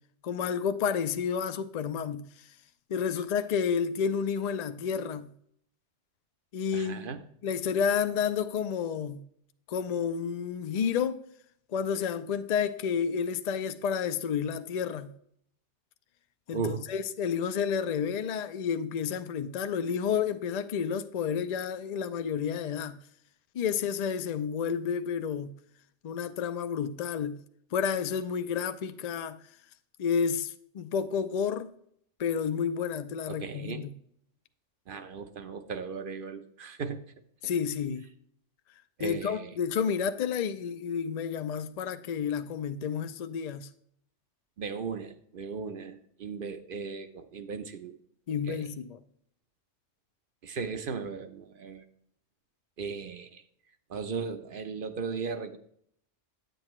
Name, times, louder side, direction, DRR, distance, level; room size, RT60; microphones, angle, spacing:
voice 1, 0.2-2.3 2.9-5.3 6.5-9.2 9.7-11.2 11.7-15.1 16.5-23.0 23.5-25.5 26.0-27.4 27.7-29.4 30.0-31.7 32.2-33.9 37.4-38.1 39.0-43.7 48.3-49.0, left 7 dB, 50° left, 0.5 m, -30 dB
voice 2, 6.7-7.2 16.5-16.8 33.3-33.9 34.9-37.0 39.0-39.5 44.6-48.0 48.5-48.7 50.4-51.8 52.8-53.4 53.9-55.6, right 5 dB, 55° right, 0.8 m, -37 dB
9.7 x 7.8 x 3.1 m
omnidirectional pair, 1.2 m